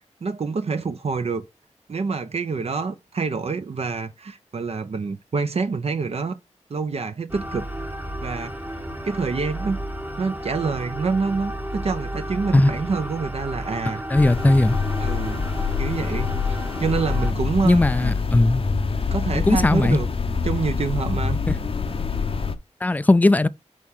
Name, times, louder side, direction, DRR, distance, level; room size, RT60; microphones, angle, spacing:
voice 1, 0.2-1.5 1.9-6.4 6.7-7.7 8.2-9.8 10.2-14.0 14.5-14.6 15.0-15.4 15.8-18.1 19.1-20.1 20.4-21.4, right 4 dB, 55° right, 0.6 m, -27 dB
sound 1, 7.3-17.3, right 1 dB, 15° right, 0.9 m, -32 dB
voice 2, 14.1-14.8 17.6-18.6 19.3-20.0 22.8-23.5, left 2 dB, 15° left, 0.3 m, -18 dB
sound 2, 14.2-22.5, left 5 dB, 50° left, 0.7 m, -25 dB
6.1 x 4.2 x 3.6 m
wide cardioid pair, 100°, 12 cm